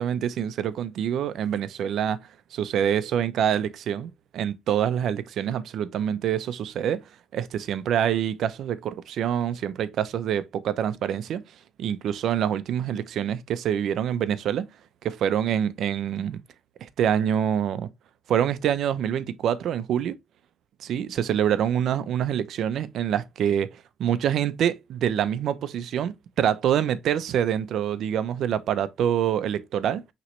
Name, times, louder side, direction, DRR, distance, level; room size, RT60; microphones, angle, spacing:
voice 1, 0.0-7.0 7.3-11.4 11.8-14.6 15.0-16.4 16.8-17.9 18.3-20.2 20.8-30.0, right 9 dB, 75° right, 0.5 m, -26 dB
5.9 x 3.0 x 3.0 m
cardioid pair, 90°, 0 cm